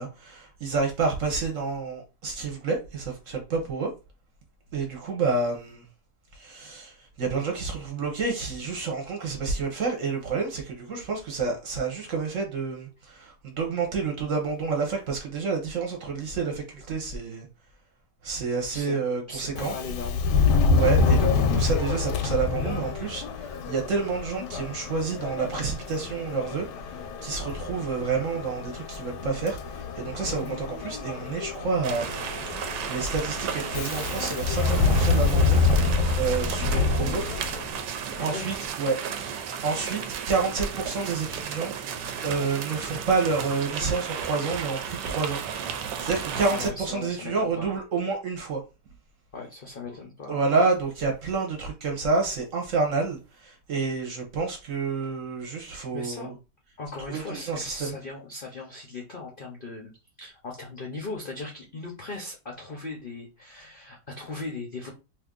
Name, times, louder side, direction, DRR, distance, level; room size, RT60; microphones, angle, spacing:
voice 1, 0.0-3.9 4.7-5.8 6.3-17.5 18.2-19.8 20.4-32.2 32.5-35.6 36.2-37.2 38.2-41.7 42.2-45.4 46.0-48.6 50.3-56.4 57.1-58.0, right 4 dB, 55° right, 1.1 m, -29 dB
voice 2, 19.3-20.7 30.2-30.5 38.2-38.5 46.3-47.7 49.3-50.6 55.9-56.3 56.8-59.9 60.2-64.9, left 3 dB, 55° left, 0.6 m, -38 dB
Subway metro underground, 19.5-37.8, left 4 dB, 80° left, 1.2 m, -26 dB
sound 1, 31.8-46.7, right 7 dB, 80° right, 1.2 m, -34 dB
2.8 x 2.6 x 3.6 m
omnidirectional pair, 1.8 m